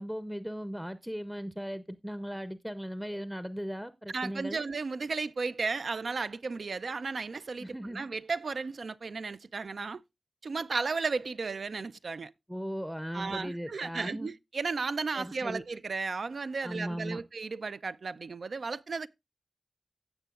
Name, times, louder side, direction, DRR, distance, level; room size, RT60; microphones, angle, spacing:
voice 1, 0.0-4.6 7.6-8.0 12.5-14.3 15.1-15.6 16.6-17.2, equal, 5° right, 0.6 m, -37 dB
voice 2, 4.1-10.0 10.4-12.3 13.1-19.1, right 4 dB, 85° right, 0.4 m, -34 dB
16.0 x 6.7 x 2.4 m
wide cardioid pair, 70°, 0 cm